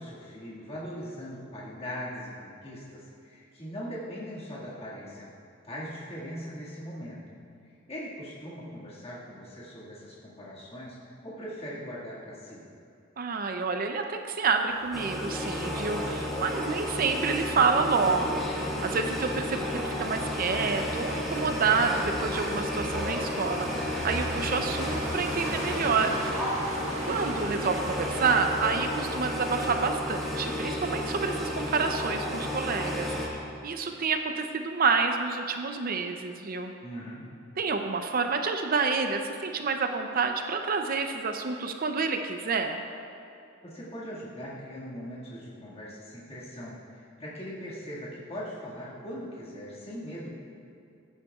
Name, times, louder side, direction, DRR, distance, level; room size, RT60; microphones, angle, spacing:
voice 1, 0.0-5.3 5.6-7.4 7.9-11.0 11.2-12.6 24.4-24.7 36.8-37.3 43.6-50.3, equal, 30° left, -7 dB, 1.9 m, -40 dB
voice 2, 13.2-23.7 24.0-26.1 27.1-33.2 33.6-36.7 37.6-42.8, right 4 dB, 45° right, 5 dB, 0.5 m, -28 dB
sound 1, 14.7-31.9, right 1 dB, 80° right, 1.6 m, -41 dB
sound 2, 14.9-33.3, left 1 dB, ahead, 1.7 m, -32 dB
sound 3, 17.6-27.4, left 2 dB, 85° left, 1.1 m, -42 dB
14.5 x 9.8 x 2.4 m, 2.7 s
head